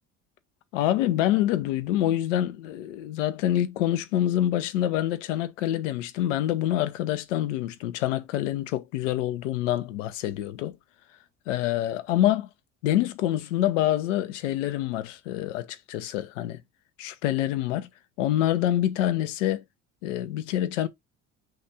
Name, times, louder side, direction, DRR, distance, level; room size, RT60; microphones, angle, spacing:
voice 1, 0.7-10.8 11.5-12.5 12.8-16.6 17.0-17.9 18.2-19.6 20.0-20.9, left 13 dB, 75° left, 0.8 m, -26 dB
5.8 x 2.5 x 3.4 m
hypercardioid pair, 65°, 38 cm